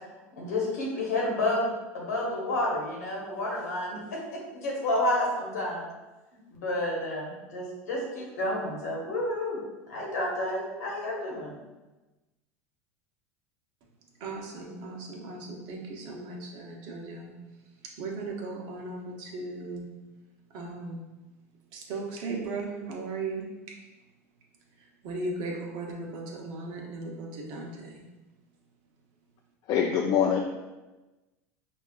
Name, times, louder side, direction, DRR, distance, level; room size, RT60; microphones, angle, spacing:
voice 1, 0.4-5.9 6.5-9.6 9.9-11.5, left 1 dB, 90° left, -3 dB, 1.2 m, -30 dB
voice 2, 14.2-17.3 17.8-19.9 20.5-21.0 21.7-23.5 25.0-28.0, right 3 dB, 60° right, 0 dB, 0.8 m, -37 dB
voice 3, 29.7-30.6, left 7 dB, 50° left, 1 dB, 0.4 m, -24 dB
5.4 x 2.3 x 2.4 m, 1.1 s
hypercardioid pair, 100°, 8 cm